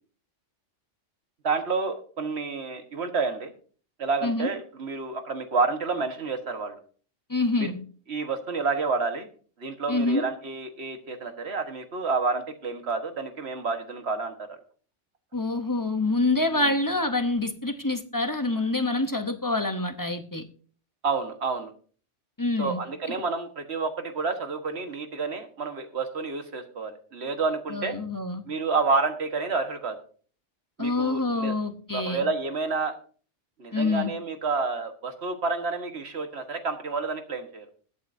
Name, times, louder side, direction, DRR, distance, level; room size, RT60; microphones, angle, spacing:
voice 1, 1.4-3.5 4.0-6.8 7.6-7.7 8.1-9.3 9.6-14.6 16.5-16.7 21.0-21.7 22.6-27.9 28.5-30.0 30.8-31.5 31.9-32.9 33.6-37.7, right 4 dB, 60° right, 6 dB, 1.6 m, -29 dB
voice 2, 7.3-7.8 9.9-10.2 15.3-20.5 22.4-22.8 23.1-23.2 27.7-28.4 30.8-32.3 33.7-34.1, left 2 dB, 20° left, 7 dB, 0.7 m, -26 dB
21.0 x 8.4 x 2.7 m, 0.42 s
omnidirectional pair, 1.2 m